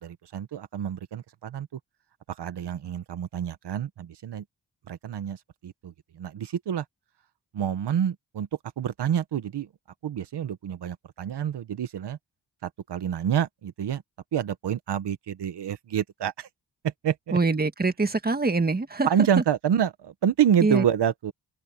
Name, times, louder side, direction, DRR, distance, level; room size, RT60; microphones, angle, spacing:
voice 1, 0.0-1.7 2.3-4.4 4.9-6.8 7.5-8.5 8.8-9.7 10.0-12.2 12.6-14.0 14.3-16.5 16.8-17.4 19.0-21.3, right 9 dB, 85° right, 1.3 m, -28 dB
voice 2, 17.3-19.1 20.6-20.8, right 3 dB, 25° right, 1.8 m, -24 dB
wide cardioid pair, 100°, 40 cm